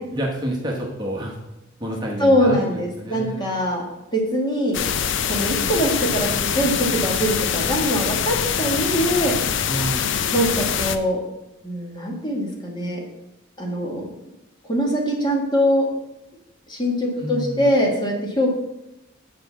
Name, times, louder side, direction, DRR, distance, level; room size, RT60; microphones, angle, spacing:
voice 1, 0.0-1.3 1.8-3.5 9.6-10.2 17.2-17.7, right 1 dB, 20° right, -1 dB, 1.1 m, -29 dB
voice 2, 2.2-3.8 4.1-4.8 5.3-9.7 10.3-11.2 11.6-13.0 13.6-14.1 14.6-15.9 16.7-18.5, equal, 20° left, 0 dB, 1.6 m, -22 dB
sound 1, 4.7-11.0, left 8 dB, 60° left, 0.5 m, -24 dB
6.8 x 4.8 x 6.9 m, 0.93 s
head